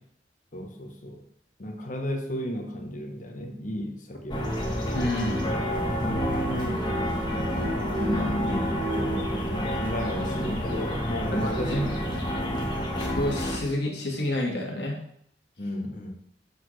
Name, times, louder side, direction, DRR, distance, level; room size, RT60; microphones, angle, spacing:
voice 1, 0.5-1.2 1.6-4.4 6.0-6.9 8.2-11.8 12.1-12.8 15.6-16.1, equal, 45° left, 4 dB, 1.1 m, -33 dB
sound 1, 4.3-13.6, equal, 25° left, 1.2 m, -28 dB
voice 2, 4.9-5.4 11.3-11.8 13.0-15.0, left 1 dB, 65° left, 0 dB, 1.7 m, -29 dB
6.7 x 6.3 x 3.2 m, 0.68 s
head